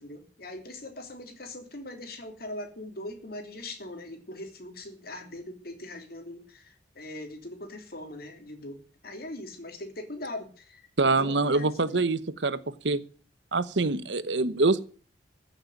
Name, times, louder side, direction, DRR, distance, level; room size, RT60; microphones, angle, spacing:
voice 1, 0.0-10.9 11.2-12.0, left 1 dB, 60° left, 6 dB, 2.9 m, -41 dB
voice 2, 11.0-12.6 12.8-13.0 13.5-14.8, right 3 dB, 80° right, 15 dB, 1.0 m, -25 dB
14.5 x 6.7 x 9.1 m, 0.41 s
head